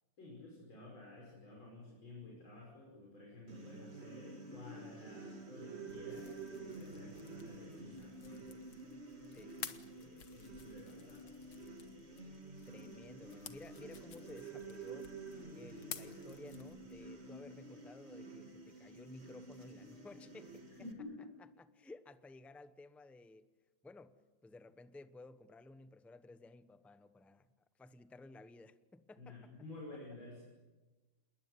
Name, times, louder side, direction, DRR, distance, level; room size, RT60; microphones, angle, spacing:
voice 1, 0.2-8.6 9.7-11.3 20.8-21.3 29.2-30.4, left 2 dB, 90° left, -3 dB, 6.8 m, -52 dB
sound 1, 3.5-20.9, right 3 dB, 35° right, 2.8 m, -50 dB
sound 2, 5.9-17.1, left 8 dB, 65° left, 2.0 m, -54 dB
voice 2, 12.7-20.7 21.7-23.5 23.8-24.1 24.4-27.5 27.8-29.5, left 2 dB, ahead, 11 dB, 0.4 m, -55 dB
28.0 x 21.0 x 9.6 m, 1.2 s
omnidirectional pair, 2.1 m